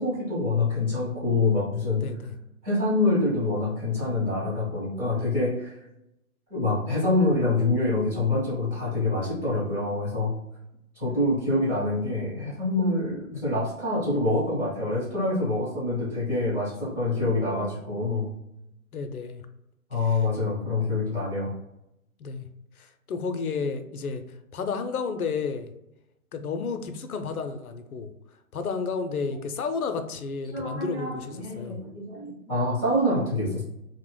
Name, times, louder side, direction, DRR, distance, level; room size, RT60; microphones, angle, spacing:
voice 1, 0.0-2.0 2.6-5.7 6.5-10.3 10.9-18.3 19.9-21.5 30.5-33.6, left 2 dB, 5° right, -10 dB, 0.6 m, -26 dB
voice 2, 2.0-2.3 18.9-19.4 20.0-20.3 22.2-22.5 22.8-24.2 24.5-25.7 26.3-28.1 28.5-31.8, left 5 dB, 75° left, 8 dB, 0.6 m, -32 dB
2.9 x 2.1 x 3.1 m, 0.87 s
hypercardioid pair, 140°, 44 cm